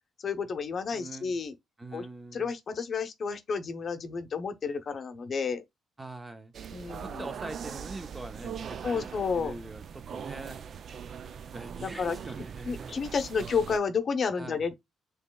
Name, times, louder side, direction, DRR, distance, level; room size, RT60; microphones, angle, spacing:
voice 1, 0.2-1.5 1.9-2.1 2.3-5.6 6.7-7.3 8.8-9.5 11.8-12.2 12.6-14.8, left 5 dB, 50° left, 0.7 m, -31 dB
voice 2, 0.9-1.4 1.8-2.5 6.0-6.5 6.9-9.1 9.3-10.6 11.5-13.0 14.4-14.6, right 2 dB, 20° right, 0.7 m, -43 dB
sound 1, 6.5-13.8, right 7 dB, 55° right, 0.4 m, -41 dB
5.1 x 3.1 x 2.2 m
cardioid pair, 90°, 0 cm